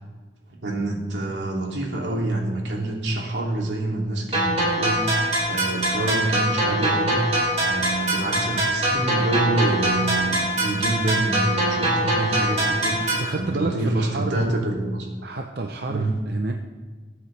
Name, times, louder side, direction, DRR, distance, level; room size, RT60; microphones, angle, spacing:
voice 1, 0.5-15.1 15.9-16.1, right 2 dB, 85° right, -2 dB, 2.6 m, -26 dB
sound 1, 4.3-13.3, right 1 dB, 35° right, 3.1 m, -23 dB
voice 2, 13.1-14.5 15.2-16.5, right 2 dB, 60° right, 3 dB, 0.7 m, -29 dB
20.5 x 8.0 x 3.3 m, 1.4 s
head